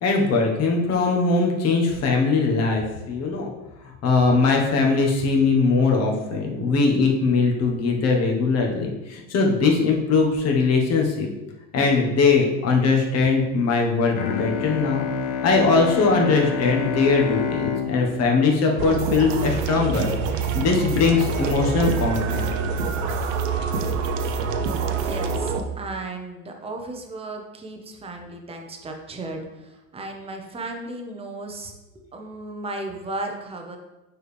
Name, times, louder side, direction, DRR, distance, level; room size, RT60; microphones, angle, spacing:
voice 1, 0.0-3.5 3.8-11.3 11.7-15.0 15.4-22.5, left 4 dB, 40° left, 1 dB, 1.5 m, -21 dB
Bowed string instrument, 14.1-19.7, left 7 dB, 55° left, 0.7 m, -29 dB
sound 1, 18.8-25.6, right 5 dB, 75° right, 0.8 m, -26 dB
voice 2, 24.9-31.7 32.1-33.8, right 2 dB, 15° right, 3 dB, 0.8 m, -35 dB
6.3 x 4.8 x 3.5 m, 1.0 s
supercardioid pair, 120°, 41 cm